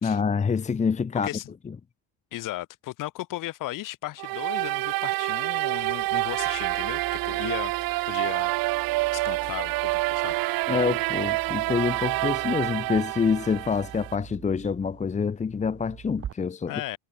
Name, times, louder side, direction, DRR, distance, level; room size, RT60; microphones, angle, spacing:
voice 1, 0.0-1.3 10.7-16.7, left 5 dB, 20° left, 1.2 m, -26 dB
voice 2, 1.1-1.5 2.3-8.5 9.1-10.5 16.7-17.0, left 16 dB, 60° left, 7.4 m, -36 dB
sound 1, 4.2-14.2, right 21 dB, 70° right, 4.2 m, -27 dB
sound 2, 5.8-16.3, right 10 dB, 40° right, 5.1 m, -46 dB
cardioid pair, 135°, 36 cm